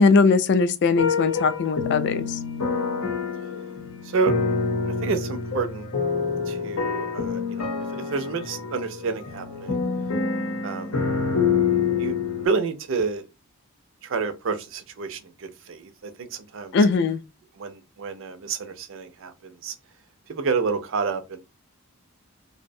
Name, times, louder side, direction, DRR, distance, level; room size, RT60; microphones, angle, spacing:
voice 1, 0.0-2.4 16.7-17.2, left 4 dB, 50° left, 0.3 m, -20 dB
sound 1, 1.0-12.5, left 5 dB, 85° left, 0.7 m, -27 dB
voice 2, 4.0-4.4 4.8-5.9 6.5-9.8 10.6-11.0 12.0-12.1 12.4-13.2 14.0-16.9 17.5-19.8 20.3-21.4, right 5 dB, 60° right, 0.4 m, -29 dB
2.5 x 2.0 x 2.6 m
head